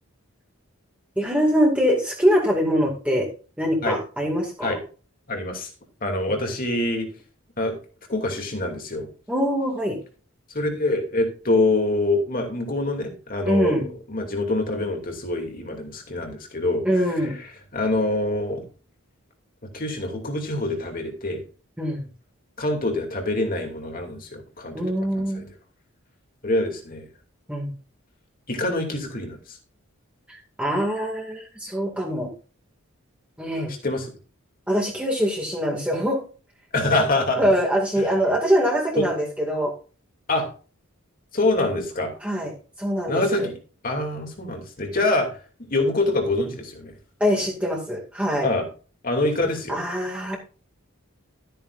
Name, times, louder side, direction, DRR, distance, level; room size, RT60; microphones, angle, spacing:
voice 1, 1.2-3.3 3.6-4.7 9.3-10.0 13.4-13.9 16.8-17.3 21.8-22.0 24.7-25.4 27.5-27.7 30.3-32.3 33.4-33.7 34.7-36.2 37.4-39.7 42.2-43.5 47.2-48.5 49.7-50.4, equal, 5° right, -2 dB, 2.2 m, -23 dB
voice 2, 5.3-5.7 6.0-7.1 7.6-7.8 8.1-9.1 10.5-16.8 17.2-17.5 17.7-18.6 19.7-21.4 22.6-24.8 25.2-25.4 26.4-27.1 28.5-29.6 33.8-34.1 36.7-37.4 39.0-39.1 40.3-40.5 41.3-42.2 43.1-43.5 43.8-45.4 45.7-47.0 48.4-48.7 49.0-49.8, left 2 dB, 40° left, 3 dB, 2.7 m, -25 dB
13.5 x 9.1 x 2.6 m, 0.36 s
head